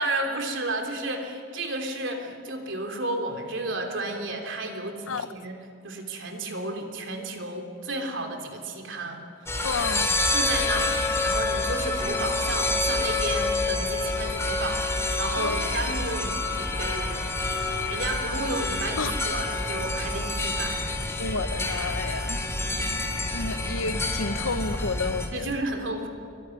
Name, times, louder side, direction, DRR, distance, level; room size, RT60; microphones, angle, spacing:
voice 1, 0.0-5.5 5.8-9.2 9.5-10.0 10.3-17.4 17.9-20.9 25.3-26.1, right 2 dB, 65° right, 3 dB, 3.4 m, -32 dB
sound 1, 9.5-25.3, left 2 dB, 15° left, 2.7 m, -27 dB
voice 2, 9.6-10.1 15.3-15.9 19.0-19.1 21.2-22.4 23.3-25.5, left 4 dB, 85° left, 11 dB, 1.1 m, -31 dB
24.0 x 22.5 x 9.8 m, 2.5 s
head